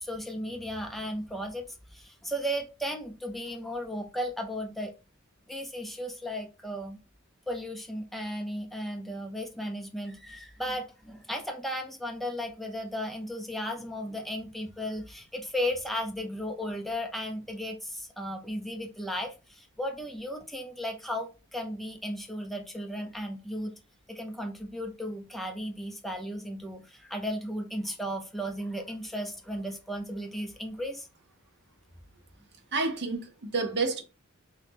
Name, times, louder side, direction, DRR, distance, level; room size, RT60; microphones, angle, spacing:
voice 1, 0.0-4.9 5.5-7.0 7.5-23.7 24.1-31.1, equal, ahead, 0.5 m, -35 dB
voice 2, 32.7-34.0, right 3 dB, 50° right, 0.7 m, -29 dB
3.1 x 2.7 x 3.4 m
head